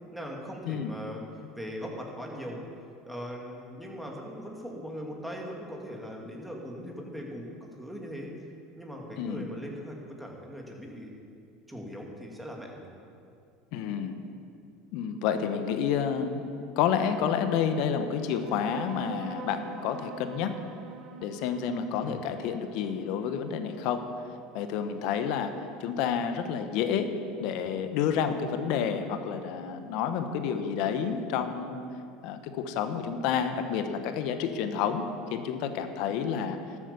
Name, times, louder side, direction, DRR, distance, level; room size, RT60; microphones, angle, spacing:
voice 1, 0.1-1.2 1.5-2.6 3.0-8.3 8.8-11.1 11.7-12.9 22.0-22.2, equal, ahead, -1 dB, 2.7 m, -40 dB
voice 2, 13.7-14.1 14.9-16.5 16.8-20.5 21.2-24.1 24.5-25.5 25.8-27.1 27.4-31.8 32.2-35.0 35.3-36.6, left 7 dB, 65° left, 8 dB, 1.1 m, -29 dB
sound 1, 18.3-25.2, right 7 dB, 55° right, 1.1 m, -46 dB
12.5 x 8.3 x 7.0 m, 2.4 s
hypercardioid pair, 85°, 0 cm